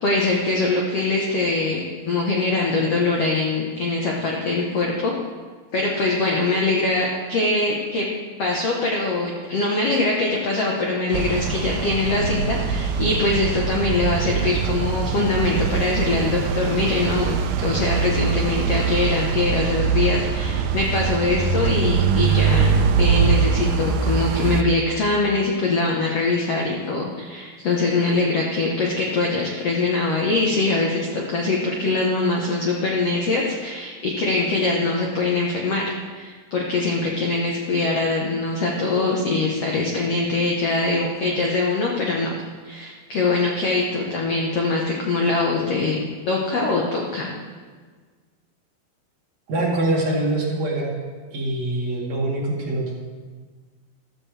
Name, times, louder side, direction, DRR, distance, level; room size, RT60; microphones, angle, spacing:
voice 1, 0.0-5.1 5.7-8.1 8.4-42.3 42.6-46.0 46.3-47.3, left 3 dB, 85° left, -1 dB, 1.3 m, -23 dB
sound 1, 11.1-24.6, right 6 dB, 80° right, 2.2 m, -22 dB
voice 2, 49.5-50.9 51.3-52.9, right 2 dB, 45° right, -4 dB, 3.1 m, -24 dB
14.5 x 14.0 x 3.4 m, 1.5 s
omnidirectional pair, 4.7 m